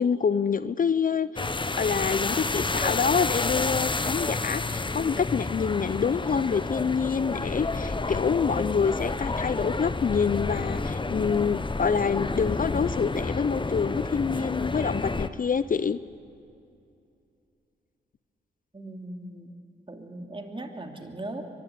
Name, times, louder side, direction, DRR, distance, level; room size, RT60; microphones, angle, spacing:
voice 1, 0.0-1.5 1.8-16.0, left 6 dB, 45° left, 15 dB, 0.6 m, -26 dB
sound 1, 1.4-15.3, left 3 dB, 25° left, 0.9 m, -30 dB
voice 2, 18.7-19.5 19.9-21.4, right 1 dB, 25° right, 3 dB, 2.7 m, -38 dB
23.5 x 11.5 x 9.7 m, 2.5 s
supercardioid pair, 45°, 20 cm